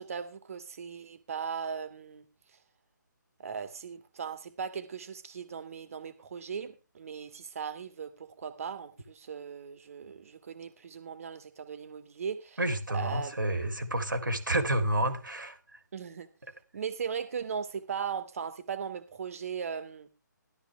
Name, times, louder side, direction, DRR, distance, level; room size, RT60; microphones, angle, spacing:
voice 1, 0.0-2.2 2.5-2.6 3.4-12.6 12.9-13.4 15.9-16.3 16.7-20.1, right 6 dB, 45° right, 2.3 m, -38 dB
voice 2, 12.6-15.8, right 1 dB, 85° right, 3.5 m, -30 dB
15.0 x 12.5 x 3.5 m
figure-of-eight pair, 150°, 10 cm